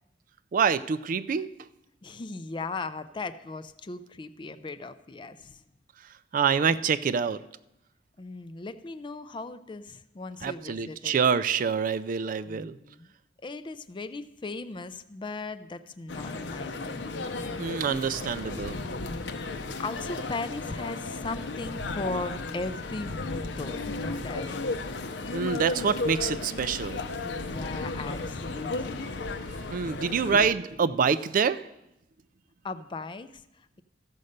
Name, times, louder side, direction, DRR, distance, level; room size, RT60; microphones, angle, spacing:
voice 1, 0.5-1.5 6.3-7.4 10.4-12.8 17.6-18.8 25.3-27.0 29.7-31.7, right 6 dB, 50° right, 14 dB, 0.3 m, -26 dB
voice 2, 2.0-5.6 8.2-11.2 12.5-13.1 13.4-17.2 19.1-24.5 27.2-29.2 32.6-33.8, left 3 dB, 25° left, 12 dB, 0.4 m, -38 dB
sound 1, 16.1-30.5, left 3 dB, 75° left, 0.7 m, -34 dB
14.0 x 5.4 x 6.5 m, 0.89 s
head